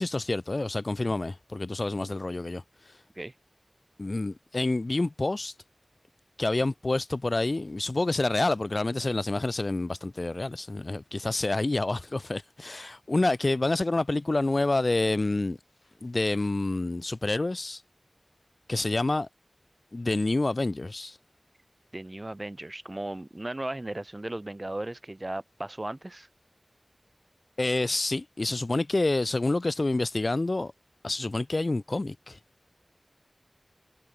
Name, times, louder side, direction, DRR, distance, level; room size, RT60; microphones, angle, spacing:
voice 1, 0.0-2.6 4.0-5.5 6.4-15.6 16.0-17.8 18.7-19.3 19.9-21.2 27.6-30.7 31.0-32.4, left 2 dB, 55° left, 1.0 m, -28 dB
voice 2, 21.9-26.3, right 1 dB, 40° right, 1.0 m, -36 dB
wide cardioid pair, 60°, 0 cm